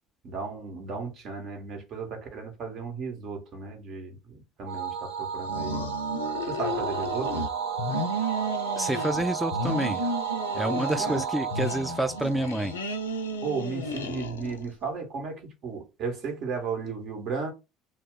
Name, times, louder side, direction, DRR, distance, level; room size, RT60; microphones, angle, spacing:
voice 1, 0.2-5.9 6.4-7.5 11.0-11.2 13.4-17.5, right 4 dB, 55° right, 1.1 m, -35 dB
sound 1, 4.7-13.3, right 7 dB, 70° right, 0.7 m, -33 dB
sound 2, 5.4-7.5 7.8-9.3 9.5-11.2 11.5-14.7, left 1 dB, 90° left, 0.3 m, -33 dB
voice 2, 8.8-10.1 10.5-12.7, right 1 dB, 5° right, 0.3 m, -28 dB
2.3 x 2.0 x 3.6 m
hypercardioid pair, 70°, 0 cm